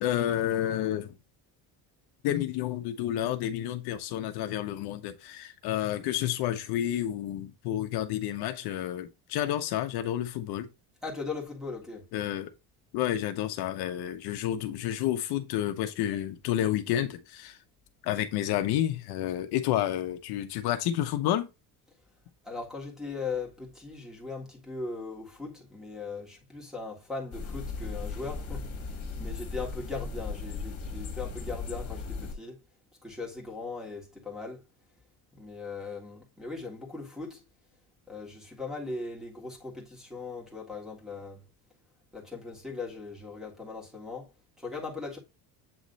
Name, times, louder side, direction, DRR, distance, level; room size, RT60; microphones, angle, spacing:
voice 1, 0.0-1.1 2.2-10.7 12.1-12.5 12.9-17.6 18.0-21.5, left 12 dB, 70° left, 0.9 m, -30 dB
voice 2, 11.0-12.1 22.4-32.6 33.0-34.6 35.3-37.4 38.1-41.4 42.1-44.3 44.6-45.2, left 4 dB, ahead, 1.7 m, -39 dB
sound 1, 27.3-32.3, left 4 dB, 35° left, 1.6 m, -37 dB
8.0 x 3.1 x 3.9 m
cardioid pair, 170°, 39 cm